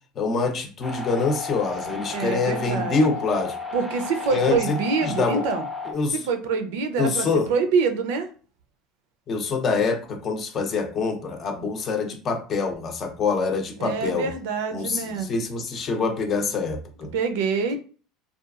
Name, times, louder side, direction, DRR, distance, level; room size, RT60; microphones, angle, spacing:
voice 1, 0.2-3.6 4.3-5.4 5.9-6.2 7.0-7.5 9.3-14.3 14.7-17.1, left 4 dB, 40° left, 5 dB, 0.6 m, -25 dB
sound 1, 0.8-5.9, left 4 dB, 5° right, 0.5 m, -33 dB
voice 2, 1.9-3.0 3.7-5.7 6.3-8.3 13.8-15.3 17.1-17.8, right 5 dB, 80° right, 7 dB, 0.5 m, -25 dB
2.8 x 2.3 x 2.4 m, 0.38 s
supercardioid pair, 115°, 0 cm